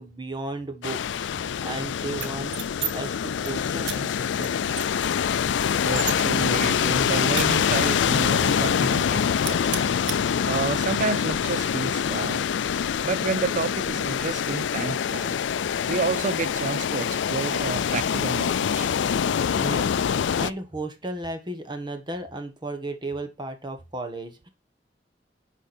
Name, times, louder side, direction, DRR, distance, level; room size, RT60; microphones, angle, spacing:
voice 1, 0.0-2.5 2.9-4.9 19.6-24.5, right 2 dB, 25° right, 1.3 m, -35 dB
sound 1, 0.8-20.5, left 7 dB, 85° left, 0.4 m, -25 dB
sound 2, 2.1-2.9 3.2-3.5 3.8-4.0 4.4-4.5 4.8-6.2 6.6-8.0 8.4-8.5 8.8-9.1 9.4-10.2, right 9 dB, 70° right, 1.1 m, -34 dB
voice 2, 5.8-9.9 10.5-12.4 13.0-15.4 15.9-18.9, right 5 dB, 45° right, 0.4 m, -30 dB
10.0 x 4.8 x 4.3 m
head